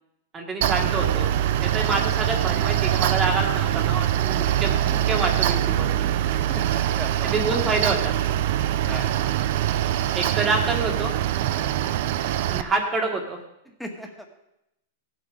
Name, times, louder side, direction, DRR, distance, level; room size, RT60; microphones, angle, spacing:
voice 1, 0.3-1.3 1.6-5.9 7.2-8.1 10.1-11.1 12.5-13.4, right 3 dB, 15° right, 1 dB, 1.7 m, -27 dB
Mechanical fan, 0.6-12.6, right 12 dB, 55° right, 0.6 m, -23 dB
voice 2, 6.3-7.4 8.9-9.1 11.5-11.8 13.8-14.3, equal, ahead, 3 dB, 1.7 m, -38 dB
16.0 x 7.6 x 5.1 m, 0.85 s
supercardioid pair, 150°, 0 cm